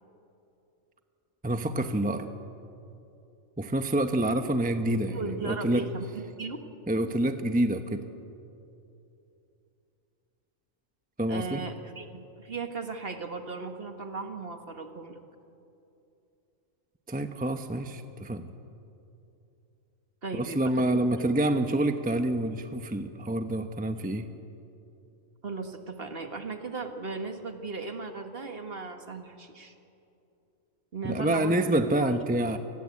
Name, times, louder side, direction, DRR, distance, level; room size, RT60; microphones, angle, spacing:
voice 1, 1.4-2.3 3.6-5.9 6.9-8.1 11.2-11.6 17.1-18.5 20.3-24.3 31.0-32.6, right 1 dB, 10° right, 7 dB, 0.8 m, -27 dB
voice 2, 5.1-6.6 11.3-15.2 20.2-20.6 20.9-21.0 25.4-29.8 30.9-31.6 32.0-32.1 32.5-32.6, right 4 dB, 45° right, 6 dB, 1.9 m, -37 dB
28.5 x 19.5 x 8.5 m, 2.8 s
omnidirectional pair, 1.4 m